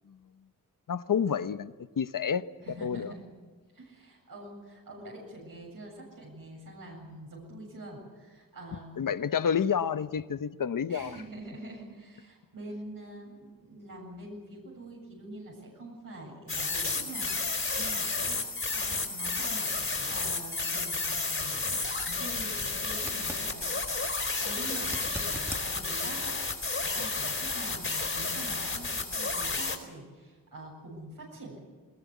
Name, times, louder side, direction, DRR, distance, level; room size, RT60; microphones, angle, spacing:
voice 1, 0.9-2.5 2.8-3.1 9.0-11.2, left 7 dB, 65° left, 0.9 m, -29 dB
voice 2, 2.6-3.2 3.7-9.0 10.9-18.4 18.7-19.7 20.1-23.6 24.4-31.6, right 1 dB, 70° right, 7.7 m, -45 dB
sound 1, 16.5-29.8, left 3 dB, 40° left, 4.3 m, -32 dB
sound 2, 22.9-23.5 24.8-25.7 28.7-28.8, equal, 5° right, 2.5 m, -40 dB
21.5 x 21.0 x 8.3 m
cardioid pair, 65°, 35 cm